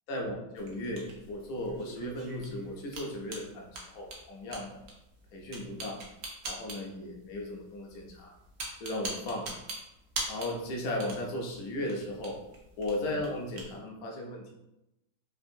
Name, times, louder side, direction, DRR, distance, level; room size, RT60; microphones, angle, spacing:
voice 1, 0.1-4.8 5.3-6.0 6.4-8.3 8.8-9.5 10.3-12.4 12.8-14.5, left 1 dB, 75° left, -1 dB, 0.8 m, -36 dB
sound 1, 0.6-13.8, right 2 dB, 80° right, 0.7 m, -43 dB
3.6 x 2.5 x 2.6 m, 0.90 s
omnidirectional pair, 2.3 m